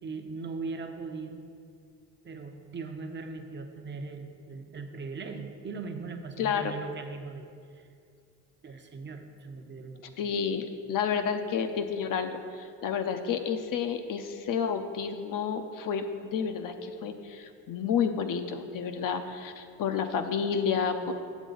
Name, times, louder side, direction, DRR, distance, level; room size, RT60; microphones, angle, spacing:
voice 1, 0.0-1.4 2.2-7.5 7.7-7.9 8.6-10.2, right 4 dB, 30° right, 5 dB, 0.8 m, -39 dB
voice 2, 6.4-6.7 10.2-21.1, left 6 dB, 55° left, 7 dB, 0.7 m, -30 dB
8.2 x 7.2 x 3.9 m, 2.3 s
supercardioid pair, 85°, 39 cm